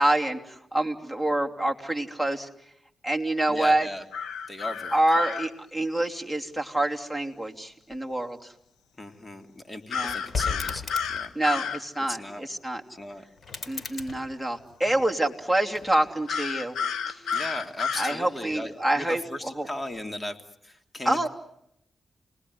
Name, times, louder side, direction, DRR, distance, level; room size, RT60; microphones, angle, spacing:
voice 1, 0.0-2.5 3.0-3.9 4.9-8.5 9.9-10.2 11.3-12.8 13.7-16.7 17.1-17.2 18.0-19.7 21.0-21.3, right 1 dB, 5° left, 4 dB, 3.1 m, -26 dB
voice 2, 3.5-4.0 4.5-5.3 9.0-11.7 12.1-12.5 12.9-13.2 17.3-21.3, left 1 dB, 25° left, 6 dB, 2.8 m, -37 dB
sound 1, 4.1-5.5 9.9-11.8 16.3-18.2, left 6 dB, 90° left, 1.2 m, -30 dB
sound 2, 9.9-11.3 13.4-15.2 15.7-16.4, left 5 dB, 60° left, 3.9 m, -37 dB
29.5 x 20.0 x 9.6 m, 0.79 s
cardioid pair, 50°, 0 cm